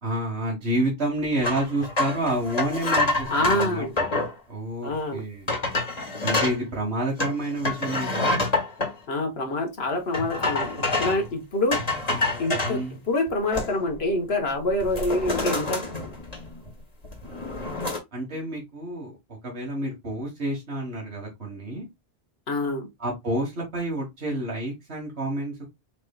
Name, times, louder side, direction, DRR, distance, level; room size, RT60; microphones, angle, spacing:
voice 1, 0.0-4.1 4.5-5.5 6.2-8.4 12.6-13.0 17.2-17.8 18.1-19.2 19.4-21.9 23.0-25.6, right 1 dB, 85° right, 1.8 m, -29 dB
sound 1, 1.4-4.3 4.9-5.0 5.5-6.6 7.2-8.9 10.1-11.3 11.7-12.8 13.3-14.0 14.3-14.5 14.8-16.7 17.0-18.0, left 2 dB, 40° left, 1.5 m, -27 dB
voice 2, 3.3-3.9 4.8-5.2 9.1-11.8 12.4-15.8 22.5-22.9, left 2 dB, 75° left, 1.4 m, -26 dB
4.5 x 4.3 x 2.3 m
omnidirectional pair, 1.1 m